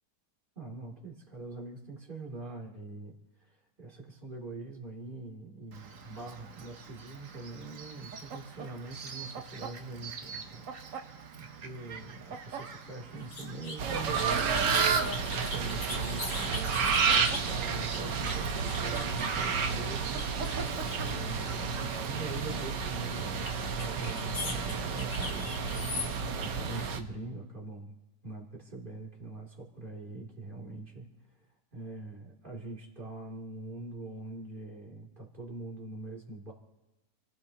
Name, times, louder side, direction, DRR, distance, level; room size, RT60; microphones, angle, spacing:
voice 1, 0.6-20.7 21.0-25.6 25.9-28.0 28.2-31.5 31.7-36.5, right 3 dB, 30° right, -2 dB, 3.0 m, -44 dB
Fowl, 5.7-22.1, right 5 dB, 55° right, 1.3 m, -39 dB
sound 1, 13.2-19.6 20.2-21.4 23.2-26.0, left 3 dB, 75° left, 3.1 m, -41 dB
sound 2, 13.8-27.0, right 5 dB, 85° right, 1.7 m, -31 dB
29.5 x 16.5 x 2.9 m, 1.0 s
omnidirectional pair, 1.8 m